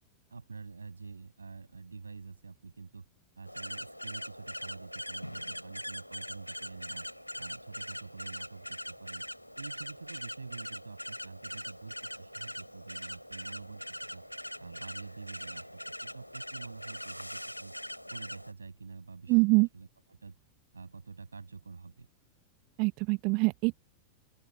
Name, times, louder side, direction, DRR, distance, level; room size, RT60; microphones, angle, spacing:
voice 1, 0.3-3.0 3.4-7.1 7.4-9.2 9.6-13.8 14.1-14.2 14.6-17.7 18.1-20.4 20.7-22.1, right 4 dB, 75° right, 6.5 m, -47 dB
sound 1, 3.5-18.5, equal, 90° left, 3.1 m, -42 dB
voice 2, 19.3-19.7 22.8-23.7, right 31 dB, 45° right, 0.9 m, -24 dB
open air
figure-of-eight pair, 90°, 0 cm